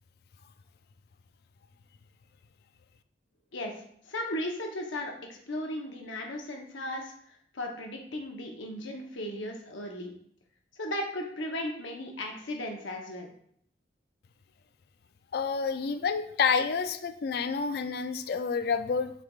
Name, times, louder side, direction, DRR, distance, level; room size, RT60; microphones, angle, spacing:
voice 1, 4.1-7.1 7.5-10.1 10.8-13.3, left 1 dB, 90° left, 2 dB, 0.9 m, -36 dB
voice 2, 15.3-19.1, left 5 dB, 55° left, 10 dB, 0.3 m, -29 dB
6.4 x 3.4 x 2.4 m, 0.65 s
head